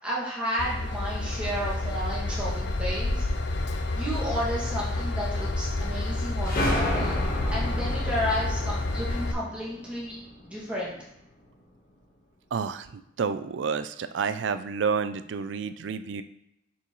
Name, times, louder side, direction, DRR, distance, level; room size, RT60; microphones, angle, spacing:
voice 1, 0.0-3.3 3.9-7.2 7.5-10.2 10.4-11.0, equal, 5° right, -8 dB, 2.1 m, -32 dB
Train / Engine, 0.6-9.3, left 2 dB, 70° left, 0.6 m, -29 dB
sound 1, 6.4-10.9, left 1 dB, 45° left, 1.2 m, -32 dB
voice 2, 12.5-16.2, right 6 dB, 80° right, 12 dB, 0.4 m, -30 dB
6.8 x 4.6 x 3.1 m, 0.81 s
head